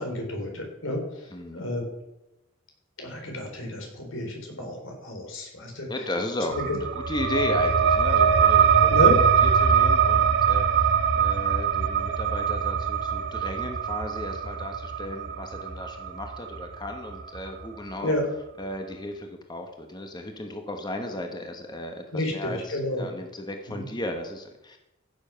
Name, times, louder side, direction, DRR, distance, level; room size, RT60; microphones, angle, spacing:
voice 1, 0.0-1.8 3.0-5.9 6.6-6.8 8.9-9.2 18.0-18.2 22.1-23.1 23.7-23.9, left 1 dB, 90° left, 2 dB, 4.0 m, -30 dB
voice 2, 1.3-1.6 5.9-8.9 9.4-18.1 18.6-24.8, left 1 dB, 20° left, 4 dB, 1.2 m, -35 dB
sound 1, 6.5-17.7, right 7 dB, 60° right, 0.8 m, -22 dB
15.5 x 7.2 x 5.8 m, 0.92 s
head